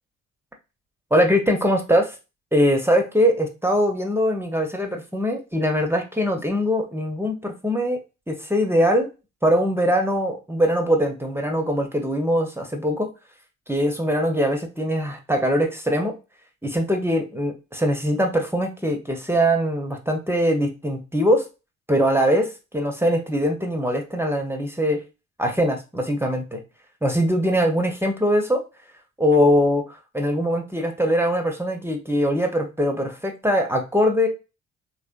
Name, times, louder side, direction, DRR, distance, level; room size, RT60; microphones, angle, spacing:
voice 1, 1.1-2.1 2.5-8.0 8.3-9.1 9.4-13.1 13.7-16.2 16.6-21.5 21.9-25.0 25.4-26.6 27.0-28.6 29.2-34.3, equal, 5° right, 3 dB, 0.8 m, -22 dB
3.3 x 3.2 x 2.5 m, 0.29 s
figure-of-eight pair, 45°, 38 cm